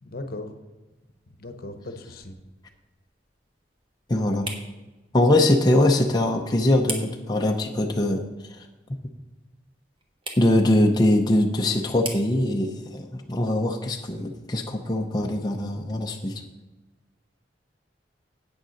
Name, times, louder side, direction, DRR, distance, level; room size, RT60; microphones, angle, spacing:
voice 1, 0.0-0.5 1.4-2.4, left 2 dB, 55° left, 8 dB, 0.9 m, -37 dB
sound 1, 0.9-15.7, right 3 dB, 30° right, 1.3 m, -44 dB
voice 2, 4.1-4.5 5.1-8.7 10.4-16.4, left 1 dB, 25° left, 2 dB, 0.6 m, -22 dB
8.6 x 6.6 x 6.3 m, 1.1 s
head